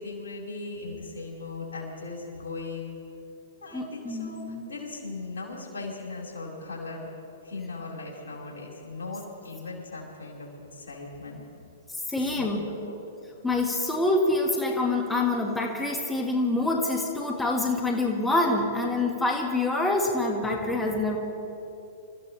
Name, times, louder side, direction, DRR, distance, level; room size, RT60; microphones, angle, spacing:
voice 1, 0.0-2.9 3.6-7.1 7.4-11.4 12.1-12.9, left 3 dB, 75° left, -2 dB, 4.8 m, -38 dB
voice 2, 3.7-4.7 12.1-12.7 13.4-21.2, left 2 dB, 10° left, -1 dB, 1.9 m, -26 dB
28.0 x 14.5 x 3.4 m, 2.8 s
hypercardioid pair, 115°, 0 cm